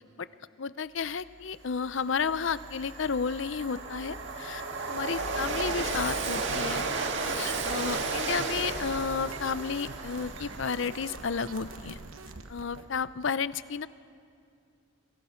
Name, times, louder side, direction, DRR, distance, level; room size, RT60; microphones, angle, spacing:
voice 1, 0.6-6.9 7.2-12.0 12.5-13.9, left 5 dB, 65° left, 16 dB, 0.6 m, -32 dB
Train, 1.4-1.5 1.9-12.3, right 3 dB, 60° right, 1.9 m, -34 dB
sound 1, 5.4-12.9, right 3 dB, 85° right, 1.2 m, -46 dB
26.5 x 24.0 x 5.7 m, 2.4 s
head